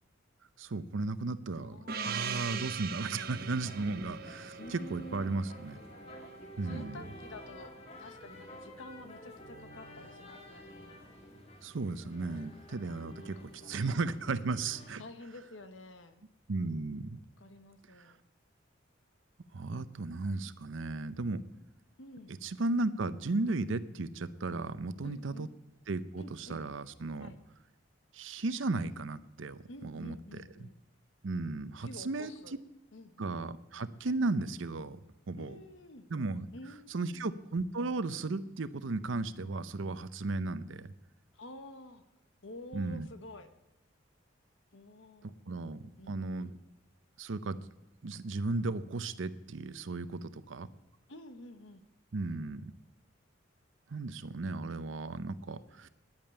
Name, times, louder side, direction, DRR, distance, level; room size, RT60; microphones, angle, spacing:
voice 1, 0.6-5.8 6.6-7.1 11.6-15.0 16.5-17.2 18.0-18.1 19.5-21.4 22.4-25.5 25.9-27.3 28.1-30.2 31.2-32.3 33.2-35.0 35.3-35.6 36.1-36.5 36.9-40.9 42.7-43.1 45.2-46.6 47.2-47.6 48.0-50.7 52.1-52.7 53.9-55.9, right 3 dB, 75° right, 15 dB, 0.7 m, -35 dB
voice 2, 1.6-2.4 4.6-5.4 6.6-11.1 13.2-14.1 15.0-16.2 17.1-18.2 22.0-22.4 25.0-25.5 26.2-26.6 27.2-27.4 29.7-30.8 31.8-32.6 32.9-33.4 35.4-36.1 36.5-37.3 41.3-42.0 42.4-43.5 44.7-45.5 46.0-46.6 51.1-51.8, left 1 dB, 75° left, 9 dB, 1.2 m, -50 dB
Gong, 1.9-6.2, right 6 dB, 50° right, 0.9 m, -40 dB
sound 1, 3.2-14.9, equal, 30° left, 2.0 m, -50 dB
10.5 x 9.0 x 8.8 m, 1.0 s
head